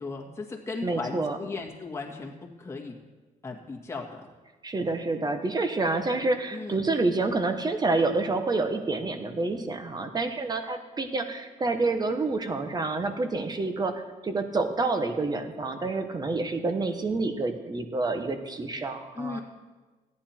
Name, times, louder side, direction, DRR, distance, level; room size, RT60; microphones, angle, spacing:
voice 1, 0.0-3.0 3.4-4.3 6.5-6.8 19.1-19.4, left 3 dB, 20° left, -1 dB, 1.9 m, -36 dB
voice 2, 0.8-1.4 4.6-19.4, right 3 dB, 25° right, 7 dB, 1.1 m, -28 dB
14.0 x 9.7 x 4.4 m, 1.3 s
cardioid pair, 115°, 15 cm